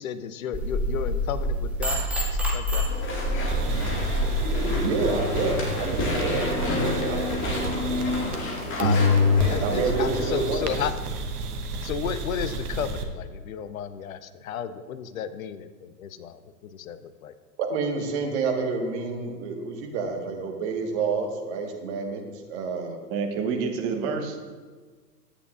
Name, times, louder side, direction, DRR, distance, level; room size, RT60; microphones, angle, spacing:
voice 1, 0.0-2.1 2.5-2.8 8.8-9.1 9.5-10.9 11.8-14.2 14.4-15.7 16.0-16.3 16.8-17.0 17.2-17.3, left 8 dB, 60° left, 12 dB, 0.7 m, -32 dB
sound 1, 0.5-4.8, equal, 5° right, 0.4 m, -27 dB
Walk footsteps / Chatter / Squeak, 2.9-10.5, left 2 dB, 25° left, 1.8 m, -30 dB
sound 2, 3.5-8.5 8.8-13.0, left 1 dB, 70° right, 1.0 m, -28 dB
voice 2, 4.8-7.3 9.6-10.8 17.6-22.2 22.5-23.0, right 4 dB, 45° right, 2 dB, 1.4 m, -29 dB
voice 3, 23.1-24.4, right 5 dB, 30° right, 4 dB, 0.9 m, -28 dB
10.0 x 8.5 x 2.5 m, 1.4 s
figure-of-eight pair, 105°, 48 cm